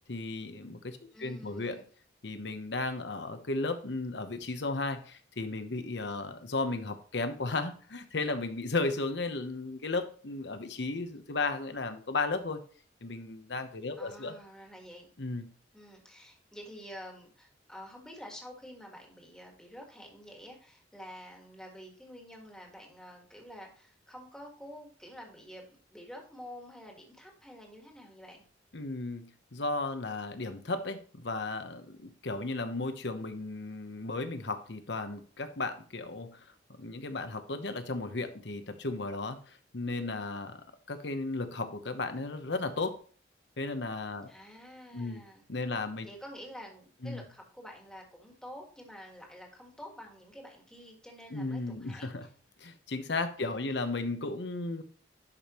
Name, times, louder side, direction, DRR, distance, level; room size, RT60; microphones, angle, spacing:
voice 1, 0.1-1.8 2.2-12.6 13.0-14.4 15.2-15.5 28.7-36.4 36.8-43.0 43.6-44.3 44.9-45.2 45.5-46.1 47.0-47.2 51.3-52.3 52.6-54.8, left 3 dB, 75° left, 8 dB, 1.0 m, -35 dB
voice 2, 1.1-1.9 14.0-15.1 15.7-28.4 44.3-45.4 46.0-52.1 53.4-53.6, equal, 5° left, 0 dB, 1.7 m, -48 dB
11.0 x 5.2 x 3.0 m, 0.43 s
head